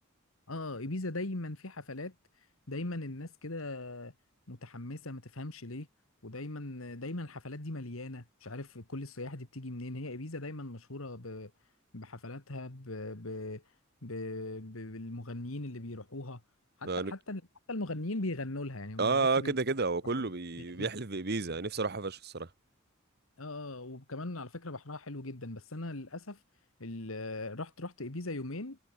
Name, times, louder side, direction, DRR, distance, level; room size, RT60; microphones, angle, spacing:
voice 1, 0.5-2.1 2.7-4.1 4.5-5.9 6.2-11.5 11.9-13.6 14.0-16.4 16.8-17.4 17.7-19.5 20.1-20.3 20.8-20.9 23.4-26.4 26.8-28.8, left 2 dB, 75° left, 2.2 m, -39 dB
voice 2, 19.0-22.5, right 3 dB, 50° right, 1.3 m, -31 dB
head